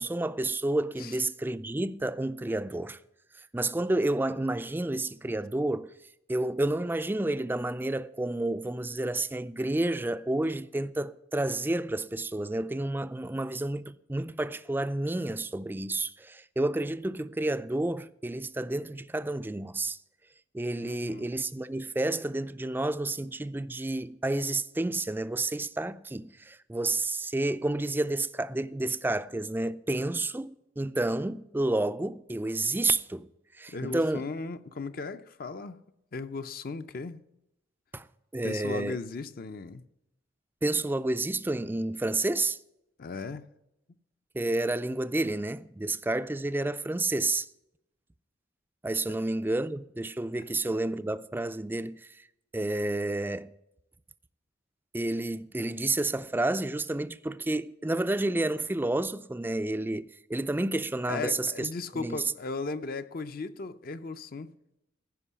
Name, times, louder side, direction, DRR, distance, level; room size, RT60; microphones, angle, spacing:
voice 1, 0.0-3.0 3.5-5.9 6.3-20.0 20.5-33.3 33.6-34.3 37.9-38.1 38.3-39.0 40.6-42.6 44.3-47.5 48.8-52.0 52.5-53.5 54.9-61.7 61.9-62.2, right 2 dB, 10° right, 0.4 m, -30 dB
voice 2, 20.8-21.3 33.7-35.8 36.1-37.2 38.4-39.8 43.0-43.4 61.1-64.5, left 3 dB, 50° left, 0.5 m, -37 dB
15.5 x 5.3 x 8.2 m
head